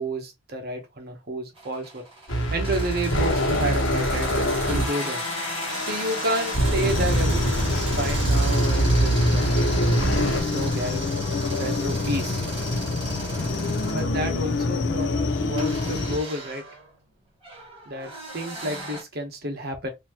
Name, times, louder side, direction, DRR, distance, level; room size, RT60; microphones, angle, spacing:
voice 1, 0.0-2.0 2.5-5.2 5.8-9.5 10.3-11.1 11.5-12.4 13.9-16.6 17.9-19.9, right 1 dB, 55° right, 1.1 m, -30 dB
sound 1, 1.6-14.1 15.6-19.0, right 3 dB, 30° right, 1.7 m, -37 dB
sound 2, 2.3-10.4, equal, 90° left, 1.3 m, -24 dB
sound 3, 6.8-16.2, left 3 dB, 60° left, 0.6 m, -27 dB
4.2 x 2.7 x 3.0 m
head